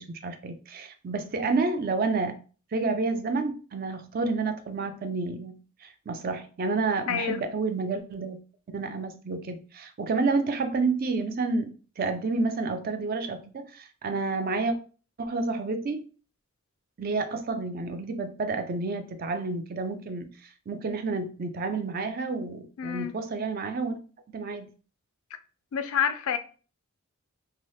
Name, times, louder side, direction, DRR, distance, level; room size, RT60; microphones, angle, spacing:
voice 1, 0.0-2.4 2.7-8.4 8.7-14.8 15.2-16.1 17.0-24.0 24.3-24.7, right 3 dB, 40° right, 0.4 m, -30 dB
voice 2, 7.1-7.4 22.8-23.1 25.7-26.4, left 8 dB, 70° left, 0.4 m, -28 dB
2.9 x 2.7 x 3.1 m
head